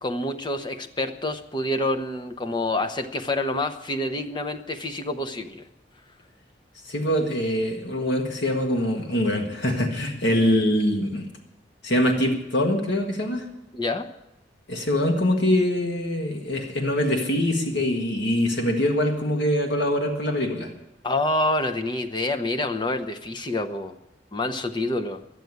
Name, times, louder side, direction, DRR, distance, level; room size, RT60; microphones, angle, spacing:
voice 1, 0.0-5.6 13.7-14.1 21.0-23.9 24.3-25.2, left 2 dB, 25° left, 7 dB, 0.8 m, -27 dB
voice 2, 6.8-11.3 11.8-13.4 14.7-20.7, left 1 dB, 80° left, 3 dB, 1.6 m, -23 dB
11.5 x 9.3 x 9.4 m, 0.91 s
head